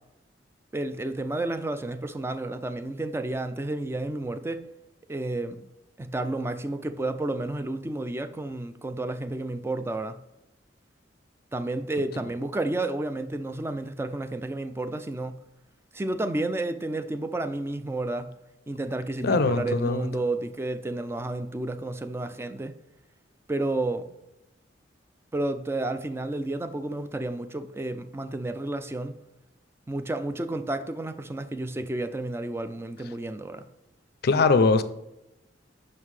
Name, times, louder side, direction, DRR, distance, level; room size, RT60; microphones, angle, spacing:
voice 1, 0.7-4.6 5.1-5.7 6.0-10.2 11.5-15.4 15.9-18.3 18.7-22.8 23.5-24.1 25.3-29.2 29.9-33.7, right 2 dB, 15° right, 0.3 m, -31 dB
voice 2, 19.2-20.1 34.2-34.8, left 3 dB, 55° left, 0.5 m, -21 dB
5.7 x 5.4 x 3.2 m
head